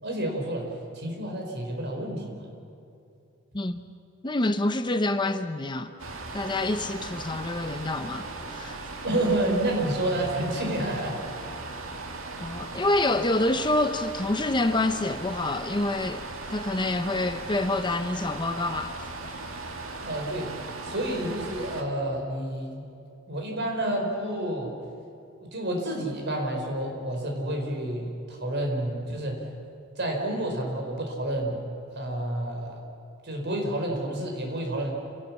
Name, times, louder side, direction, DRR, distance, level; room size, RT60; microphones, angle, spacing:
voice 1, 0.0-2.4 9.0-11.2 20.0-20.5 20.8-22.9 23.3-24.8 25.5-29.4 30.0-31.6 31.9-32.8 33.2-34.9, right 1 dB, 55° right, 4.5 m, -29 dB
voice 2, 3.5-3.9 4.2-5.9 6.3-8.8 12.4-19.4, left 2 dB, 20° left, 0.7 m, -27 dB
sound 1, 6.0-21.8, right 3 dB, 75° right, 2.1 m, -38 dB
28.0 x 17.5 x 7.2 m
head